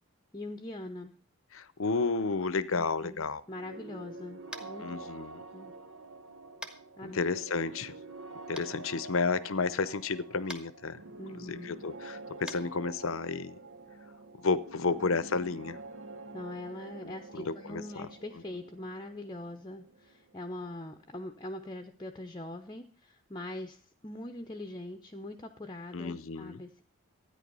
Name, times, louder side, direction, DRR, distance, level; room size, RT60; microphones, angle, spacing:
voice 1, 0.3-1.1 2.7-5.3 5.5-5.8 7.0-7.2 11.2-11.8 14.8-15.0 16.3-26.8, left 1 dB, 20° left, 0.7 m, -42 dB
voice 2, 1.5-3.4 4.8-5.4 7.0-7.9 8.5-11.0 11.3-13.6 14.4-15.8 17.3-17.8 25.9-26.6, left 4 dB, 70° left, 0.7 m, -31 dB
sound 1, 3.5-21.1, right 3 dB, 70° right, 1.1 m, -47 dB
Tap, 4.5-4.8 6.6-6.8 8.5-8.6 10.4-10.6 12.4-12.6, left 1 dB, 5° right, 1.1 m, -41 dB
13.5 x 9.7 x 5.4 m
head